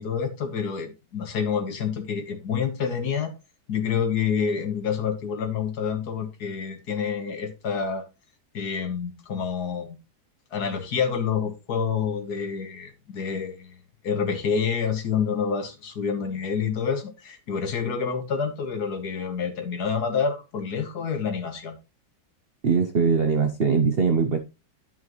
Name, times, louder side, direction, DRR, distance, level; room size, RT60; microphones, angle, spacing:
voice 1, 0.0-3.3 3.7-8.1 8.5-10.0 10.5-13.8 14.0-21.8, left 6 dB, 55° left, 1.7 m, -28 dB
voice 2, 22.6-24.4, right 5 dB, 85° right, 0.5 m, -21 dB
11.0 x 5.6 x 3.0 m
omnidirectional pair, 2.1 m